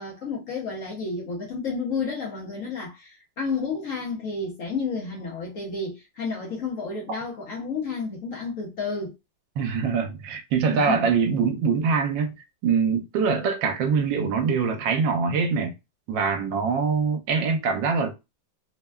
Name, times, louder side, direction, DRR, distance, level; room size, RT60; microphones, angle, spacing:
voice 1, 0.0-9.1 10.7-11.1, left 4 dB, 60° left, 0.9 m, -31 dB
voice 2, 9.6-12.3 12.6-15.7 16.1-18.1, right 5 dB, 80° right, 1.3 m, -23 dB
3.3 x 2.1 x 2.2 m
omnidirectional pair, 2.0 m